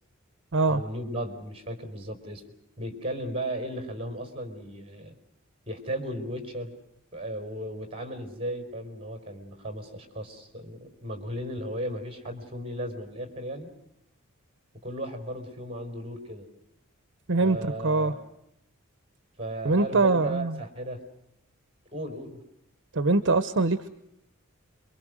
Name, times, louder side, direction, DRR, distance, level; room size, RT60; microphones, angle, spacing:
voice 1, 0.6-2.4 2.8-5.2 5.7-6.7 7.1-13.7 14.8-16.5 17.4-18.3 19.4-21.0 21.9-22.4, right 1 dB, 25° right, 7 dB, 4.4 m, -35 dB
voice 2, 19.6-20.6 22.9-23.9, right 3 dB, 55° right, 12 dB, 0.9 m, -23 dB
27.5 x 23.5 x 6.3 m, 0.81 s
head